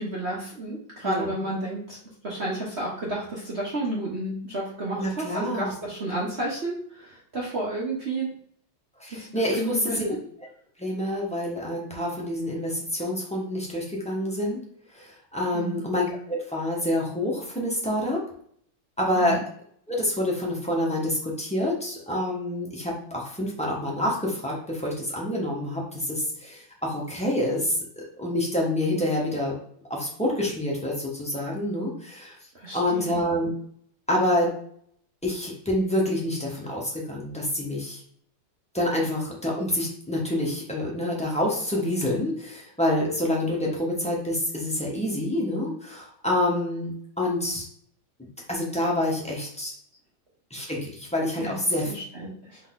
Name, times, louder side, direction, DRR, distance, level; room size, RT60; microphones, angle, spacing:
voice 1, 0.0-2.0 2.2-8.3 9.1-10.2 15.5-15.8 19.1-19.4 32.5-33.1 51.4-51.5 51.9-52.6, right 1 dB, 45° right, -5 dB, 0.9 m, -31 dB
voice 2, 5.0-5.7 9.0-10.1 10.8-14.6 14.9-18.2 19.0-19.4 19.9-27.8 28.2-29.6 29.9-32.4 32.7-33.5 34.1-34.5 35.2-38.0 38.7-46.9 47.2-47.6 48.5-49.7 50.5-51.9, left 1 dB, 5° left, -4 dB, 0.6 m, -27 dB
4.0 x 3.5 x 3.8 m, 0.62 s
omnidirectional pair, 2.2 m